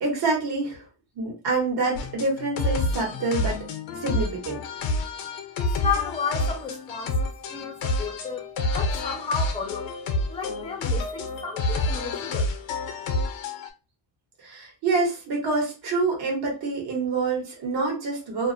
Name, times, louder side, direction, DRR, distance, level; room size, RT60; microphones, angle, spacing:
voice 1, 0.0-0.8 1.2-3.6 4.0-4.6 14.4-18.5, right 3 dB, 55° right, 1.1 m, -26 dB
sound 1, 2.0-13.7, left 2 dB, 80° left, 0.6 m, -28 dB
voice 2, 5.6-9.9 10.3-12.5, left 6 dB, 15° left, 0.4 m, -32 dB
2.4 x 2.0 x 2.6 m
cardioid pair, 125°, 45 cm